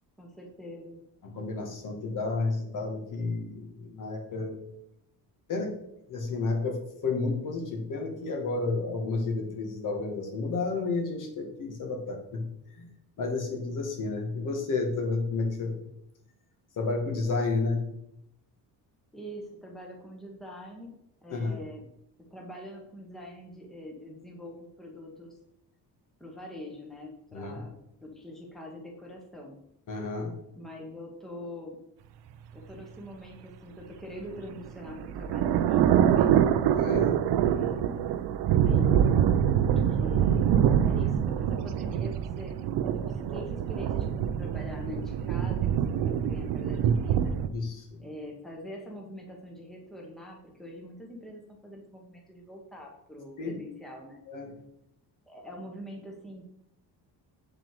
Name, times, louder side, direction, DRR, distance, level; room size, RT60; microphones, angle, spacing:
voice 1, 0.2-1.0 19.1-20.9 21.2-21.8 22.3-25.3 26.2-27.7 28.0-29.6 30.6-31.8 32.5-36.4 37.4-38.1 38.6-39.1 39.7-40.6 40.8-47.3 48.0-54.2 55.3-56.5, left 1 dB, ahead, -1 dB, 1.3 m, -43 dB
voice 2, 1.2-4.6 5.5-5.8 6.1-12.5 12.7-12.9 13.2-15.8 16.8-17.9 21.3-21.6 27.3-27.6 29.9-30.3 36.7-37.2 47.5-48.1 53.4-53.6 54.3-54.5, left 3 dB, 50° left, 2 dB, 2.1 m, -31 dB
sound 1, 34.4-47.5, right 9 dB, 90° right, 0.8 m, -25 dB
8.1 x 7.4 x 4.9 m, 0.77 s
cardioid pair, 180°, 39 cm